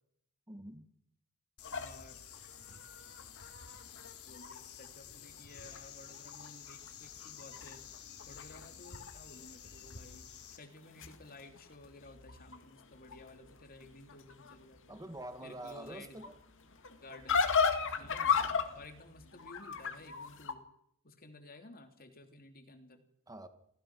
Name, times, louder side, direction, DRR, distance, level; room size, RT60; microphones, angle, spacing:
voice 1, 0.5-0.9 14.9-16.3 23.3-23.5, right 1 dB, 15° right, 1.9 m, -46 dB
sound 1, 1.6-10.6, left 8 dB, 80° left, 3.6 m, -51 dB
sound 2, 1.6-4.9 5.3-5.4 5.7-6.5 6.8-9.1 9.4-9.9 10.6-20.5, left 6 dB, 60° left, 2.2 m, -36 dB
voice 2, 1.6-2.2 4.3-7.8 8.3-10.3 10.6-15.0 15.4-16.2 17.0-17.4 18.0-20.6 21.0-23.0, left 2 dB, 40° left, 3.1 m, -54 dB
28.5 x 16.5 x 6.2 m
head